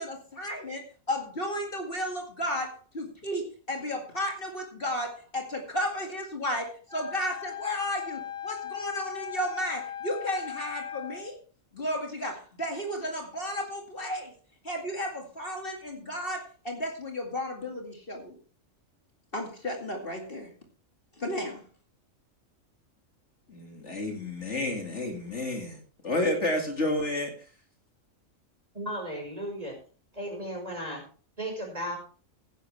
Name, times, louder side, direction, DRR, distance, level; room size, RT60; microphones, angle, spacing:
voice 1, 0.0-11.4 11.7-14.3 14.6-18.4 19.3-20.5 21.2-21.7, equal, 45° left, 2 dB, 2.4 m, -33 dB
Wind instrument woodwind instrument, 6.9-11.3, left 9 dB, 5° left, 3.3 m, -38 dB
voice 2, 23.5-27.3, left 1 dB, 60° left, 3 dB, 2.5 m, -30 dB
voice 3, 28.7-29.7 30.1-31.0 31.4-32.0, equal, 30° right, 1 dB, 5.0 m, -35 dB
15.0 x 11.0 x 3.4 m, 0.38 s
omnidirectional pair, 1.4 m